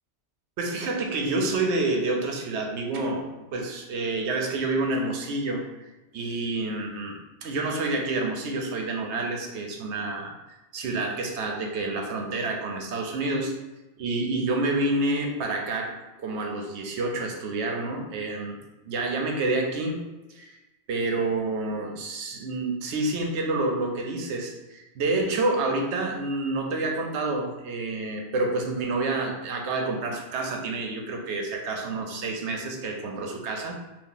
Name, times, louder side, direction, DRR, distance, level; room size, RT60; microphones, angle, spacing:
voice 1, 0.6-5.6 6.1-13.5 14.0-15.9 16.2-18.6 18.9-20.0 20.3-20.5 20.9-33.8, right 2 dB, 80° right, 2 dB, 0.9 m, -28 dB
2.8 x 2.4 x 3.8 m, 1.0 s
omnidirectional pair, 1.2 m